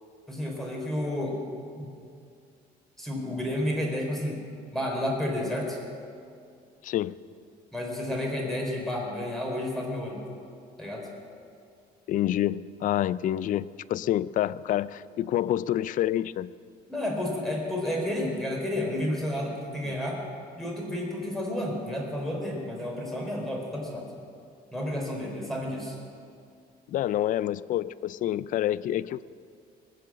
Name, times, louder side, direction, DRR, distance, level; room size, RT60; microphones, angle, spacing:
voice 1, 0.3-1.4 1.8-1.9 3.0-4.4 4.7-5.8 7.7-10.2 10.8-11.1 16.9-20.2 20.5-24.1 24.7-26.0, left 1 dB, ahead, -2 dB, 4.2 m, -31 dB
voice 2, 6.8-7.2 12.1-16.5 19.9-20.0 26.9-29.2, left 12 dB, 50° left, 19 dB, 0.4 m, -28 dB
20.5 x 7.7 x 7.6 m, 2.3 s
cardioid pair, 110°, 17 cm